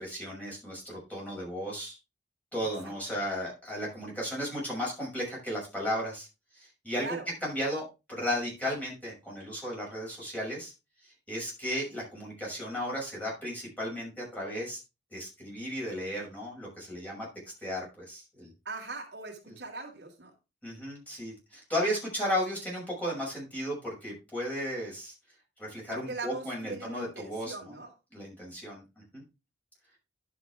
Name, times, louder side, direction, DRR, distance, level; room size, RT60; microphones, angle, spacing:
voice 1, 0.0-2.0 2.5-6.3 6.5-7.1 7.4-7.8 8.1-10.7 11.0-14.8 15.1-17.3 17.6-18.5 20.6-25.1 25.6-27.7 28.1-28.8 29.1-29.2, equal, 10° left, -4 dB, 6.3 m, -35 dB
voice 2, 7.0-7.3 18.6-20.3 25.9-27.9, right 3 dB, 70° right, 0 dB, 2.8 m, -40 dB
11.0 x 7.4 x 3.5 m, 0.27 s
head